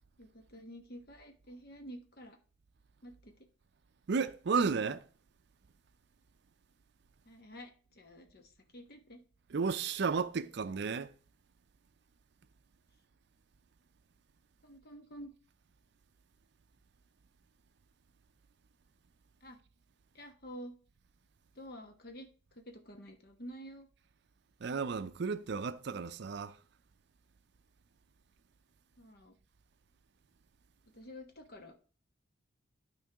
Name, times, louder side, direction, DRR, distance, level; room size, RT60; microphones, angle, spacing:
voice 1, 0.2-2.4 3.0-3.3 7.2-9.2 14.6-15.3 19.4-19.6 20.1-20.7 21.5-22.3 22.6-23.9 29.0-29.4 30.9-31.8, equal, 50° left, 1.3 m, -49 dB
voice 2, 4.1-5.1 9.5-11.1 24.6-26.6, right 5 dB, 55° right, 0.4 m, -33 dB
12.0 x 4.5 x 3.5 m
head